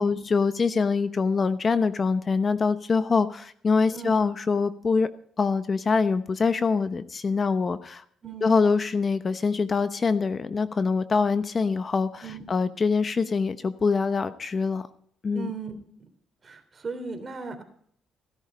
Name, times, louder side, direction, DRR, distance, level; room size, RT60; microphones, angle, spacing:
voice 1, 0.0-5.1 5.4-8.0 8.4-14.9 15.2-15.5, left 4 dB, 40° left, 12 dB, 0.9 m, -24 dB
voice 2, 8.2-8.6 12.2-12.5 15.3-15.8 16.4-17.6, right 4 dB, 35° right, 6 dB, 3.3 m, -37 dB
16.5 x 11.0 x 5.1 m, 0.62 s
cardioid pair, 90°, 0 cm